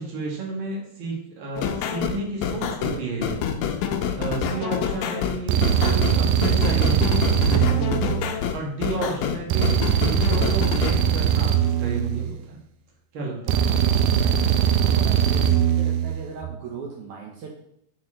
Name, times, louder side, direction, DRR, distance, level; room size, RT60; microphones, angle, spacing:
voice 1, 0.0-3.4 3.7-3.9 4.2-7.1 7.3-8.2 8.5-12.6 13.1-13.8, right 3 dB, 45° right, -3 dB, 2.2 m, -32 dB
sound 1, 1.6-10.9, left 8 dB, 80° left, 1.6 m, -27 dB
sound 2, 4.4-4.7 5.5-8.8 9.5-12.8 13.5-16.4, right 9 dB, 90° right, 2.2 m, -21 dB
voice 2, 8.0-8.4 13.7-14.4 14.8-17.5, right 5 dB, 70° right, -1 dB, 2.2 m, -39 dB
8.7 x 4.3 x 3.8 m, 0.70 s
omnidirectional pair, 3.8 m